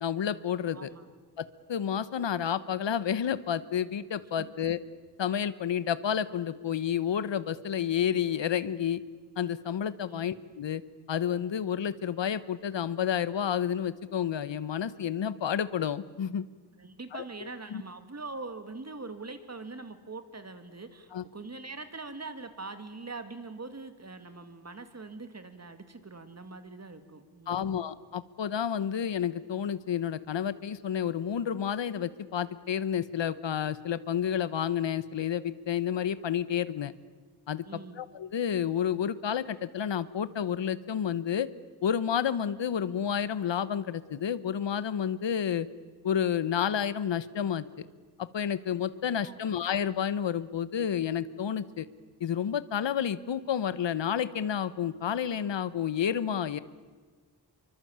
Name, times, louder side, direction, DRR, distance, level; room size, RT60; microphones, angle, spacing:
voice 1, 0.0-0.9 1.4-4.8 5.2-9.0 9.4-10.8 11.1-16.4 17.1-17.8 21.1-21.2 27.5-36.9 37.5-41.5 41.8-45.7 46.0-47.9 48.2-51.9 52.2-56.6, left 8 dB, 85° left, 16 dB, 1.1 m, -30 dB
voice 2, 0.7-1.1 4.4-4.5 10.1-10.2 16.8-27.8 37.6-38.0 49.2-49.6, right 3 dB, 35° right, 9 dB, 2.4 m, -43 dB
26.5 x 24.0 x 8.8 m, 1.4 s
wide cardioid pair, 100°, 43 cm